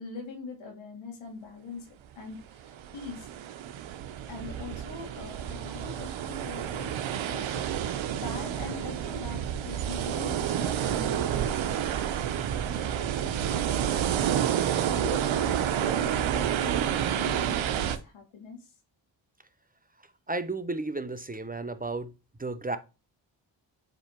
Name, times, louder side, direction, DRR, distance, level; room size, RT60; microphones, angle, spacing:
voice 1, 0.0-1.9 2.2-3.3 4.3-6.9 7.2-18.7, left 4 dB, 90° left, 2.4 m, -43 dB
sound 1, 2.6-18.0, right 10 dB, 90° right, 0.8 m, -29 dB
voice 2, 20.3-22.1 22.4-22.8, right 3 dB, 20° right, 0.8 m, -33 dB
7.6 x 3.3 x 4.5 m
cardioid pair, 60°, 45 cm